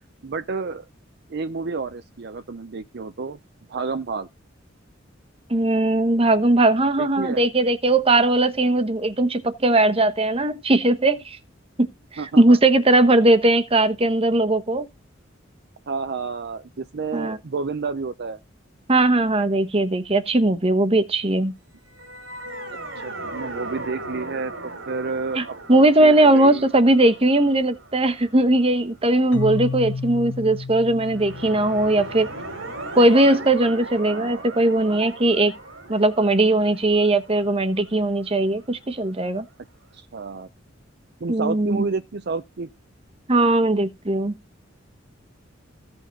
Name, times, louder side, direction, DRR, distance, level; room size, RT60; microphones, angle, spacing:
voice 1, 0.2-0.8 1.3-3.4 3.7-4.3 7.0-7.4 12.2-12.6 15.9-18.4 23.0-26.7 34.1-34.5 39.9-40.5 41.2-42.7, right 4 dB, 55° right, 0.6 m, -30 dB
voice 2, 5.5-11.4 11.8-11.9 12.4-14.9 17.1-17.4 18.9-21.5 25.3-32.3 32.9-35.5 35.9-39.5 41.3-41.8 43.3-44.4, right 2 dB, 30° right, 1.0 m, -19 dB
sound 1, 21.9-29.1 31.0-38.8, right 2 dB, 80° right, 2.8 m, -38 dB
Keyboard (musical), 29.3-33.0, left 4 dB, 75° left, 0.8 m, -33 dB
15.5 x 5.3 x 4.0 m
head